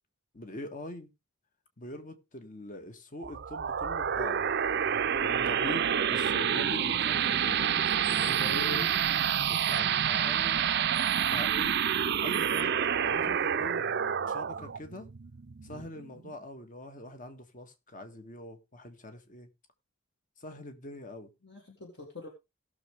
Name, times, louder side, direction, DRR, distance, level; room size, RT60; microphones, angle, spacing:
voice 1, 0.3-1.1 1.8-4.5 5.2-9.0 9.5-10.7 11.2-11.8 12.2-13.9 14.3-15.1 15.6-19.5 20.4-21.3, left 1 dB, 40° left, 1.6 m, -43 dB
sound 1, 3.2-16.3, right 8 dB, 50° right, 0.6 m, -28 dB
voice 2, 8.2-9.5 15.7-15.8 21.4-22.3, left 2 dB, 55° left, 2.6 m, -43 dB
17.5 x 6.6 x 3.5 m
head